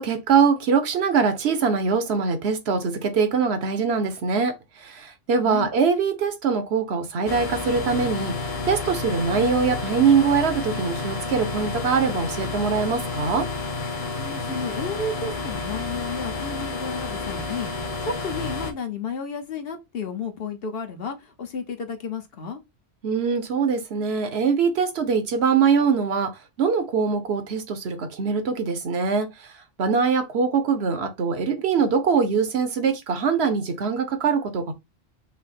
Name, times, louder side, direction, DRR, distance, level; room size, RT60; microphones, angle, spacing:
voice 1, 0.0-8.3 8.6-13.5 23.0-29.5 29.8-34.7, right 5 dB, 75° right, 1.1 m, -23 dB
sound 1, 7.3-18.7, left 3 dB, 35° left, 0.9 m, -30 dB
voice 2, 14.2-17.7 18.0-22.6, left 4 dB, 65° left, 1.1 m, -32 dB
5.5 x 2.1 x 4.1 m
omnidirectional pair, 1.1 m